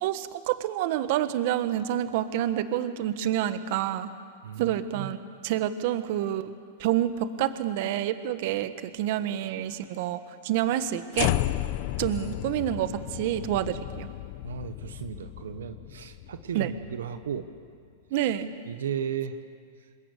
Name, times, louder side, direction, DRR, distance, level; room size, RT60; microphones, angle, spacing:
voice 1, 0.0-4.1 4.6-5.2 5.4-6.5 6.8-11.3 12.0-14.1 16.5-16.7 18.1-18.5, right 12 dB, 60° right, 11 dB, 1.4 m, -28 dB
voice 2, 4.4-5.1 14.4-17.5 18.2-18.3 18.7-19.4, right 8 dB, 85° right, 9 dB, 1.3 m, -35 dB
sound 1, 11.1-17.4, left 15 dB, 55° left, 0.9 m, -33 dB
27.0 x 21.5 x 8.3 m, 2.2 s
hypercardioid pair, 120°, 0 cm